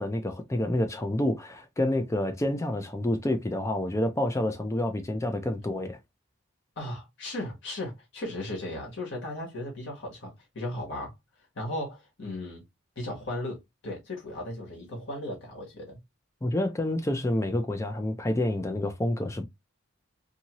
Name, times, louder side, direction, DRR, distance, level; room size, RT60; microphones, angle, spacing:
voice 1, 0.0-6.0 16.4-19.5, left 1 dB, 15° left, 0.4 m, -28 dB
voice 2, 6.8-11.1 11.5-12.6 13.0-16.0, left 1 dB, 60° left, 1.3 m, -36 dB
2.7 x 2.7 x 2.8 m
head